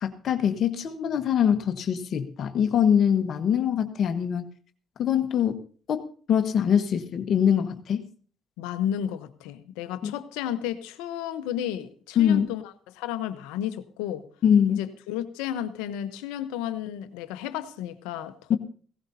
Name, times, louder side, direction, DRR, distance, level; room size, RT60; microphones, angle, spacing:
voice 1, 0.0-4.5 5.0-5.5 5.9-6.0 6.3-8.0 10.0-10.1 12.2-12.5 14.4-14.8 18.5-18.6, left 8 dB, 65° left, 1.2 m, -23 dB
voice 2, 8.6-14.2 14.7-18.6, left 10 dB, 90° left, 0.9 m, -33 dB
17.5 x 16.5 x 2.8 m
supercardioid pair, 60°, 0 cm